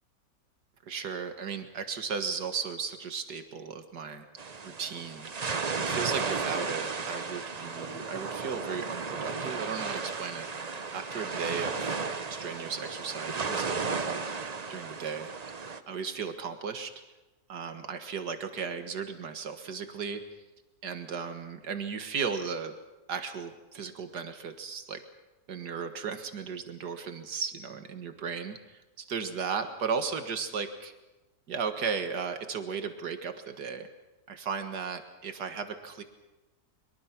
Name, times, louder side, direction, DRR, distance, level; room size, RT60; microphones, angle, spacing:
voice 1, 0.8-5.3 5.8-10.5 10.9-11.9 12.4-14.2 14.7-15.3 15.9-16.9 17.5-20.2 20.8-22.7 23.1-25.0 25.5-30.9 31.5-33.9 34.3-36.0, right 6 dB, 85° right, 7 dB, 2.2 m, -35 dB
sound 1, 4.4-15.8, right 4 dB, 30° right, 0.8 m, -34 dB
23.5 x 23.0 x 6.0 m, 1.1 s
omnidirectional pair, 1.7 m